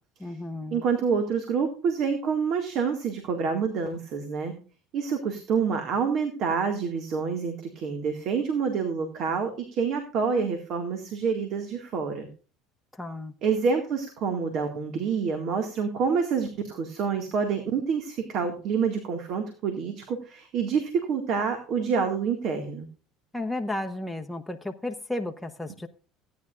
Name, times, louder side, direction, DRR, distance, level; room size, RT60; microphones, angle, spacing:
voice 1, 0.2-0.8 12.9-13.3 23.3-25.9, left 2 dB, 5° left, 3 dB, 0.8 m, -33 dB
voice 2, 0.7-4.5 4.9-12.3 13.4-22.9, right 6 dB, 60° right, 5 dB, 1.9 m, -27 dB
16.5 x 9.6 x 2.5 m, 0.36 s
supercardioid pair, 100°, 0 cm